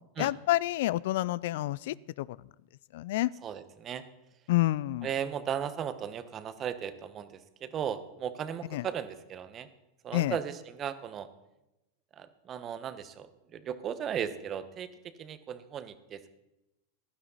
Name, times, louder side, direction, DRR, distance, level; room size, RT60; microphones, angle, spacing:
voice 1, 0.2-2.4 2.9-3.3 4.5-5.1 8.7-8.8 10.1-10.4, left 16 dB, 65° left, 21 dB, 0.3 m, -28 dB
voice 2, 3.4-4.0 5.0-9.7 10.0-11.3 12.2-16.3, right 8 dB, 35° right, 13 dB, 1.1 m, -36 dB
15.5 x 12.0 x 4.1 m, 0.94 s
hypercardioid pair, 100°, 0 cm